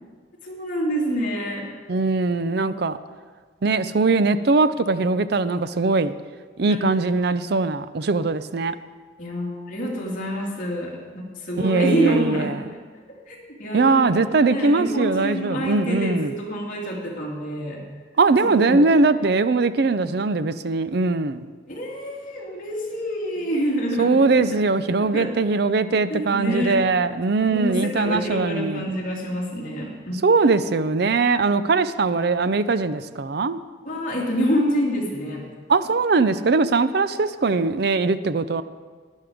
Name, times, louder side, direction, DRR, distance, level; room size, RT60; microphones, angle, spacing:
voice 1, 0.4-1.7 2.6-2.7 6.7-6.8 9.2-12.5 13.1-17.8 18.4-18.9 21.7-24.6 25.0-25.3 26.1-26.9 27.4-30.1 33.8-35.5, equal, 45° left, -3 dB, 2.6 m, -27 dB
voice 2, 1.9-3.0 3.6-6.1 6.6-8.7 11.6-12.5 13.7-16.3 18.2-21.5 24.0-28.8 30.2-33.6 35.7-38.6, right 3 dB, 55° right, 13 dB, 0.5 m, -21 dB
12.0 x 10.5 x 5.0 m, 1.5 s
head